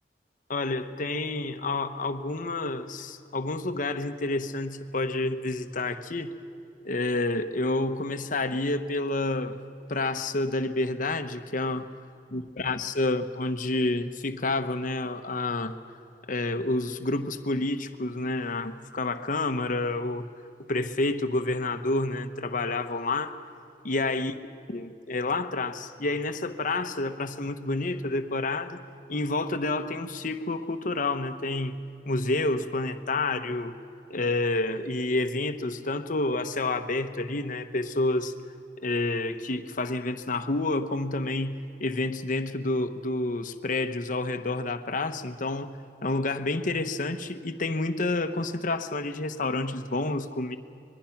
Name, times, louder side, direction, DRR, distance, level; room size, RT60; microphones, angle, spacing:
voice 1, 0.5-6.3 6.8-9.6 9.9-11.9 12.3-15.8 16.3-20.3 20.7-23.4 23.8-24.3 24.7-28.8 29.1-31.8 32.0-33.8 34.1-38.3 38.8-50.6, left 2 dB, 50° left, 9 dB, 1.0 m, -29 dB
25.5 x 21.5 x 5.9 m, 2.6 s
head